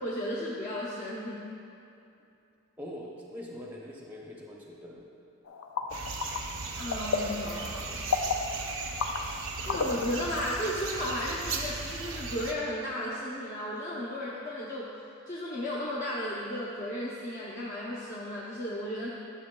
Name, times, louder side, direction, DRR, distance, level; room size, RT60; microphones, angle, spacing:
voice 1, 0.0-1.5 6.7-8.1 9.7-14.9 15.3-19.1, left 1 dB, 40° left, -7 dB, 0.7 m, -34 dB
voice 2, 2.8-5.1, left 1 dB, 10° right, -3 dB, 0.6 m, -43 dB
sound 1, 5.5-10.5, left 4 dB, 90° left, 0.4 m, -34 dB
sound 2, 5.9-12.5, right 4 dB, 75° right, 0.6 m, -37 dB
10.5 x 6.3 x 2.2 m, 2.6 s
head